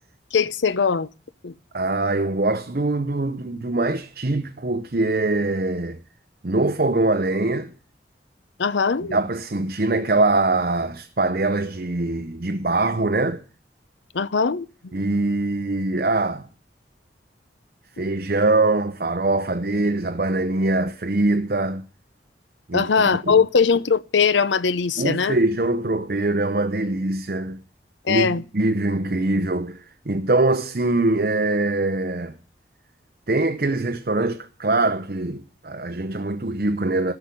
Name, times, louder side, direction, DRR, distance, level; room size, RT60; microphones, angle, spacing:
voice 1, 0.3-1.1 1.4-1.5 8.6-9.2 14.1-14.7 22.7-25.4 28.0-28.4, left 5 dB, 85° left, 0.6 m, -20 dB
voice 2, 1.7-6.0 6.4-7.7 9.1-13.4 14.9-16.5 18.0-21.9 22.7-22.9 23.2-23.4 25.0-27.6 28.1-32.3 33.3-37.1, right 2 dB, 50° right, 0.8 m, -23 dB
14.0 x 5.9 x 9.6 m
head